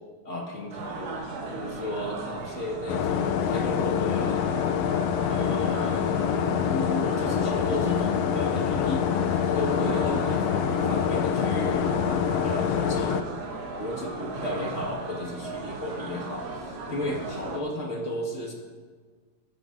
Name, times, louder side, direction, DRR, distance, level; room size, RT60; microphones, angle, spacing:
voice 1, 0.2-1.1 1.5-4.5 5.3-6.1 6.7-9.3 9.5-11.9 12.4-13.2 13.8-18.5, left 1 dB, 30° left, -1 dB, 1.7 m, -34 dB
sound 1, 0.7-17.6, right 3 dB, 60° right, 2.0 m, -37 dB
sound 2, 2.9-13.2, left 8 dB, 85° left, 1.4 m, -26 dB
21.5 x 11.5 x 2.6 m, 1.5 s
omnidirectional pair, 3.5 m